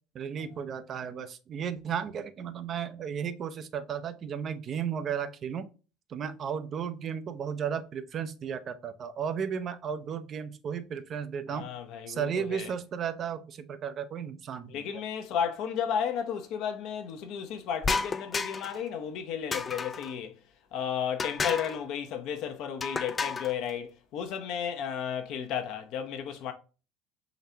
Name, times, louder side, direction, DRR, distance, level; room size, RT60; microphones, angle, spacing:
voice 1, 0.1-5.7 6.1-11.7 12.1-14.8, right 7 dB, 45° right, 0.5 m, -34 dB
voice 2, 11.5-12.7 14.7-20.3 20.7-26.5, left 8 dB, 65° left, 0.7 m, -33 dB
sound 1, 17.8-18.8 19.5-20.1 21.2-21.8 22.8-23.5, left 4 dB, 30° left, 0.3 m, -32 dB
3.9 x 3.2 x 2.8 m
hypercardioid pair, 80°, 0 cm